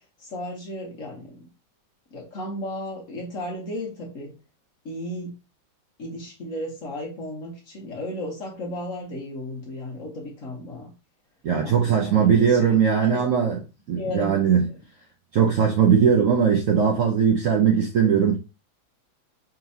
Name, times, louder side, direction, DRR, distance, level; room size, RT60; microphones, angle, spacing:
voice 1, 0.2-1.5 2.1-4.3 4.8-5.3 6.0-10.9 11.6-12.6 13.0-13.2 13.9-14.7, left 1 dB, 50° left, 1.2 m, -34 dB
voice 2, 11.4-14.7 15.3-18.4, right 7 dB, 80° right, 0.7 m, -20 dB
5.1 x 3.0 x 2.7 m
omnidirectional pair, 2.1 m